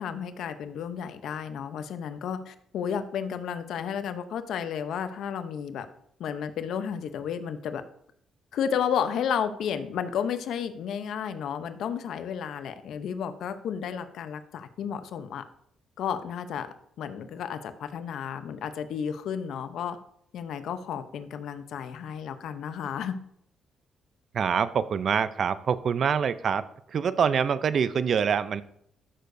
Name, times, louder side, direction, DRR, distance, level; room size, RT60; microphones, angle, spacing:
voice 1, 0.0-5.9 6.2-7.8 8.5-15.4 16.0-16.7 17.0-20.0 20.3-23.2, left 8 dB, 75° left, 10 dB, 0.7 m, -32 dB
voice 2, 24.3-28.6, right 7 dB, 55° right, 15 dB, 0.5 m, -25 dB
13.0 x 6.6 x 2.6 m, 0.70 s
cardioid pair, 90°, 0 cm